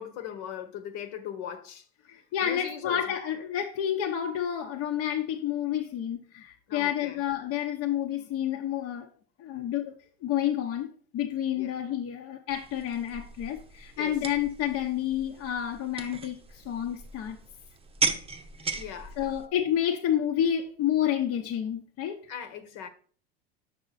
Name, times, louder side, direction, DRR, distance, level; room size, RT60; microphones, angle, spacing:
voice 1, 0.0-1.8 2.4-3.0 6.7-7.2 11.6-11.7 14.0-14.1 18.7-19.3 22.3-22.9, left 9 dB, 65° left, 1.4 m, -39 dB
voice 2, 2.1-9.1 9.4-9.9 10.2-10.9 11.1-17.4 19.2-22.2, left 10 dB, 50° left, 1.1 m, -29 dB
sound 1, 12.5-19.5, right 4 dB, 20° right, 0.8 m, -36 dB
7.0 x 5.5 x 4.1 m
hypercardioid pair, 90°, 31 cm